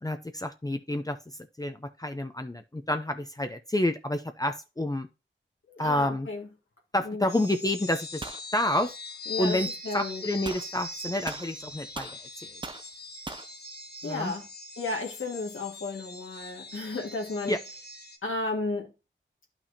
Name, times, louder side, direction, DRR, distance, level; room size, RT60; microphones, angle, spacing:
voice 1, 0.0-5.1 5.8-6.3 6.9-8.2 8.5-8.9 9.4-9.7 9.9-12.1 12.4-12.6 14.0-14.3 17.5-17.6, left 1 dB, 20° left, 0.6 m, -29 dB
voice 2, 5.7-6.5 7.0-7.3 9.3-10.2 14.0-14.5 14.8-17.5 18.2-18.9, left 3 dB, 80° left, 1.9 m, -33 dB
sound 1, 7.3-18.2, left 2 dB, 55° left, 1.5 m, -41 dB
sound 2, 8.2-8.5 10.4-10.7 11.3-12.2 12.6-12.9 13.3-13.5, right 3 dB, 25° right, 0.6 m, -39 dB
10.0 x 5.9 x 2.8 m
wide cardioid pair, 55°, 20 cm